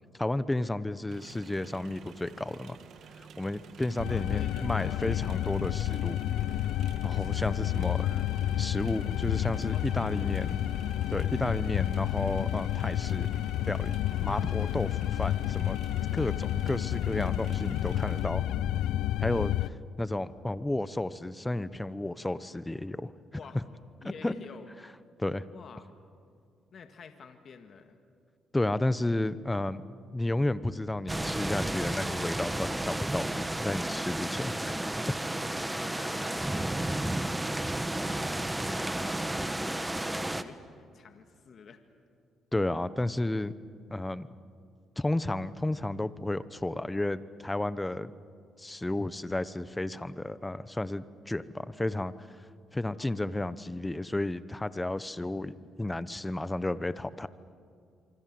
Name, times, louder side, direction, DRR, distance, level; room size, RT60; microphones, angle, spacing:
voice 1, 0.2-2.8 3.2-6.2 7.0-8.0 8.6-10.5 11.1-13.3 13.7-15.8 16.1-18.4 19.2-23.1 24.2-24.3 25.2-25.4 28.5-29.8 30.1-34.9 42.5-43.5 43.9-44.3 45.0-48.1 48.6-52.1 52.7-57.3, left 1 dB, 15° left, 15 dB, 1.0 m, -32 dB
sound 1, 1.1-18.3, right 6 dB, 70° right, 1.8 m, -51 dB
sound 2, 4.0-19.7, left 12 dB, 85° left, 0.5 m, -30 dB
voice 2, 4.1-5.6 7.2-8.3 9.7-10.7 14.3-14.8 18.5-19.8 23.3-23.6 24.0-24.7 25.5-25.8 26.7-28.0 35.3-37.5 38.1-41.8 53.0-53.3 55.6-55.7, left 6 dB, 55° left, 6 dB, 1.9 m, -50 dB
sound 3, 31.1-40.4, right 1 dB, 10° right, 1.3 m, -32 dB
26.5 x 25.0 x 7.8 m, 2.3 s
cardioid pair, 90°, 0 cm